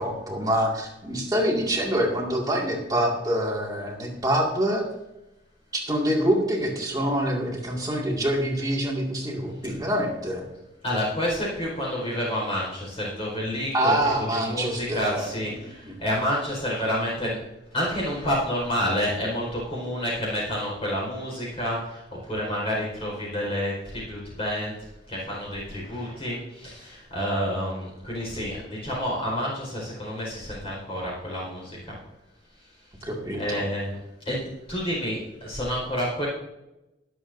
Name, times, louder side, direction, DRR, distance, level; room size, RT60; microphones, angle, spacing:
voice 1, 0.0-4.8 5.7-10.5 13.7-15.5 15.8-15.9 33.0-33.7, right 1 dB, 20° right, -1 dB, 2.1 m, -26 dB
voice 2, 10.8-13.9 14.3-17.4 17.7-24.8 25.1-31.9 33.4-33.9 34.3-36.3, equal, 30° left, -4 dB, 4.6 m, -29 dB
23.0 x 7.9 x 2.7 m, 0.95 s
head